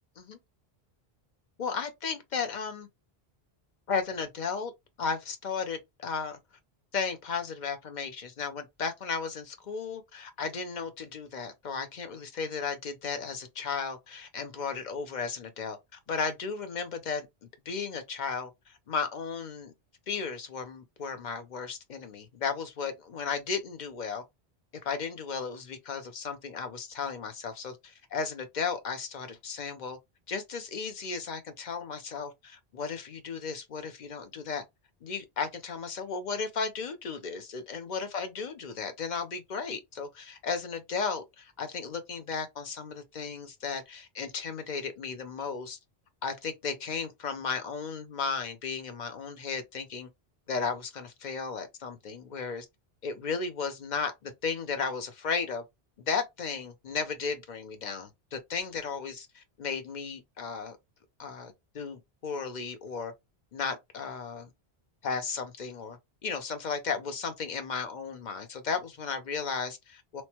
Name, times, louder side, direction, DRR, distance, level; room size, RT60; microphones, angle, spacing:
voice 1, 1.6-2.9 3.9-4.7 5.0-6.4 6.9-17.3 17.7-19.7 20.1-24.2 24.8-30.0 30.3-34.6 35.0-45.8 46.2-50.1 50.5-52.7 53.0-55.6 56.0-60.8 61.2-63.1 63.5-64.5 65.0-70.2, left 5 dB, 50° left, 0.7 m, -35 dB
3.1 x 2.1 x 2.8 m
omnidirectional pair, 1.1 m